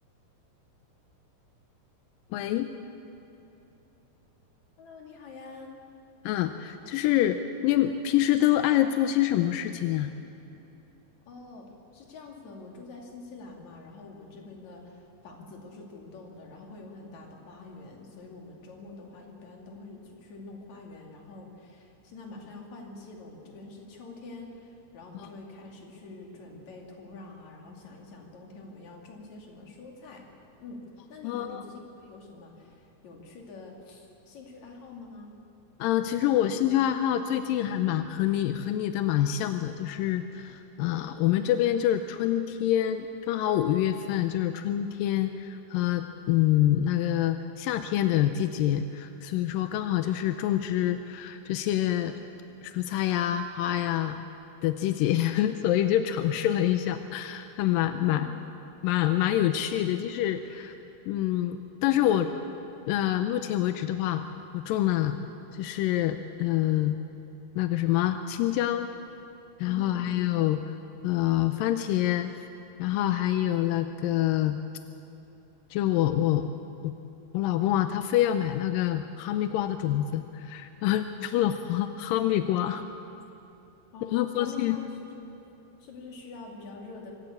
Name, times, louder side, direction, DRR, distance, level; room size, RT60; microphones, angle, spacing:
voice 1, 2.3-2.7 6.2-10.1 25.1-25.3 31.2-31.6 35.8-52.1 52.6-54.2 54.6-58.3 58.8-60.7 61.1-62.3 62.9-64.2 64.5-65.2 65.5-67.0 67.6-68.9 69.6-70.7 71.0-72.3 72.8-74.6 75.7-76.5 76.8-76.9 77.3-82.8 84.1-84.8, left 12 dB, 80° left, 9 dB, 2.1 m, -26 dB
voice 2, 4.8-5.7 11.3-30.3 30.6-30.8 31.1-35.3 58.1-58.4 69.6-70.2 83.9-85.3 85.8-87.1, left 3 dB, 50° left, 0 dB, 3.5 m, -46 dB
24.5 x 13.5 x 8.4 m, 2.9 s
omnidirectional pair, 4.5 m